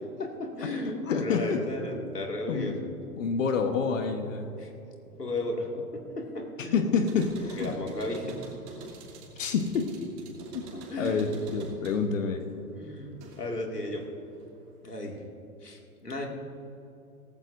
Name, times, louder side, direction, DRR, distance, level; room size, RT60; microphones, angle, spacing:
voice 1, 0.0-2.9 4.6-4.7 5.2-6.8 7.6-8.4 10.7-11.3 12.7-13.1 13.4-14.1 14.8-15.2 15.6-16.3, left 1 dB, 85° left, 1 dB, 2.3 m, -34 dB
voice 2, 1.1-1.6 2.5-2.8 3.2-4.5 6.7-7.7 9.4-9.9 10.5-10.6 11.0-12.4, left 5 dB, 55° left, 6 dB, 1.2 m, -28 dB
sound 1, 6.9-13.6 14.0-14.8, right 3 dB, 45° right, 2.8 m, -46 dB
18.0 x 15.5 x 2.6 m, 2.8 s
figure-of-eight pair, 110°, 46 cm